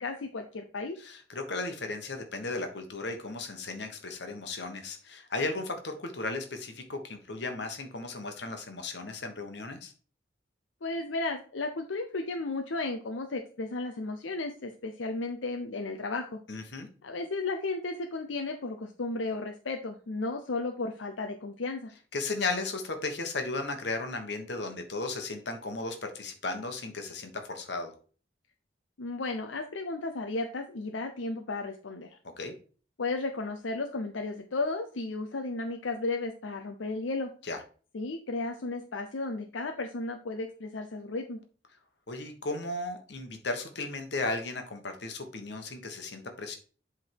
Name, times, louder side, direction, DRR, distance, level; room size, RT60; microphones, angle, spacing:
voice 1, 0.0-1.0 10.8-16.4 17.0-21.9 29.0-32.2 33.0-37.3 37.9-41.4, left 3 dB, 85° left, 4 dB, 0.7 m, -34 dB
voice 2, 1.0-9.9 16.5-16.9 22.1-27.9 32.4-32.5 37.4-37.6 42.1-46.6, left 3 dB, 65° left, 5 dB, 1.4 m, -35 dB
7.9 x 3.7 x 4.7 m, 0.40 s
head